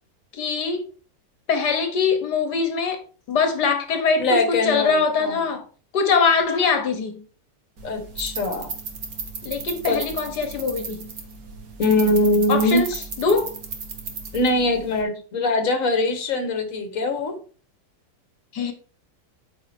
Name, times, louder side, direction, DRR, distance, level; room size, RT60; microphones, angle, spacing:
voice 1, 0.3-0.8 1.5-3.0 3.3-5.7 5.9-7.2 9.4-11.1 12.5-12.9 13.2-13.5 18.5-18.7, left 5 dB, 70° left, 1.7 m, -22 dB
voice 2, 4.2-5.4 7.8-8.7 9.9-10.0 11.8-12.8 14.3-17.4, left 2 dB, 50° left, 1.8 m, -22 dB
sound 1, 7.8-15.0, right 4 dB, 55° right, 1.8 m, -35 dB
8.6 x 4.9 x 4.4 m
omnidirectional pair, 1.9 m